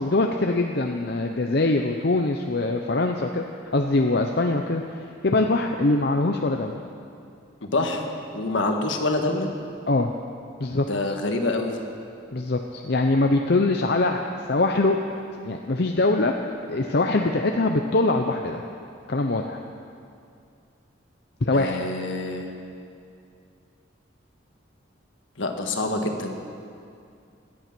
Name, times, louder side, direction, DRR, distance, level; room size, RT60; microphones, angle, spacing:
voice 1, 0.0-3.4 3.7-4.8 5.2-6.7 9.9-10.1 10.6-11.1 12.3-14.2 14.5-15.0 15.4-16.3 16.7-18.6 19.1-19.6 21.4-21.8, left 2 dB, 55° left, 3 dB, 0.7 m, -23 dB
voice 2, 7.6-8.1 8.3-9.5 10.9-11.8 21.5-22.5 25.4-26.3, left 2 dB, 70° left, 4 dB, 1.6 m, -26 dB
17.5 x 12.0 x 6.1 m, 2.4 s
head